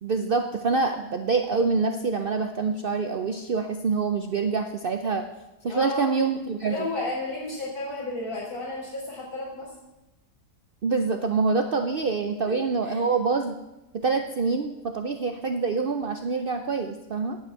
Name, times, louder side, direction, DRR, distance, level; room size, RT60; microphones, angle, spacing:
voice 1, 0.0-5.3 5.6-6.8 10.8-13.6 13.9-17.4, right 4 dB, 60° right, 6 dB, 0.6 m, -26 dB
voice 2, 5.7-6.1 6.6-9.7 12.4-12.6 12.8-13.1, left 2 dB, 80° left, -5 dB, 4.6 m, -32 dB
8.9 x 7.9 x 8.1 m, 0.99 s
omnidirectional pair, 1.6 m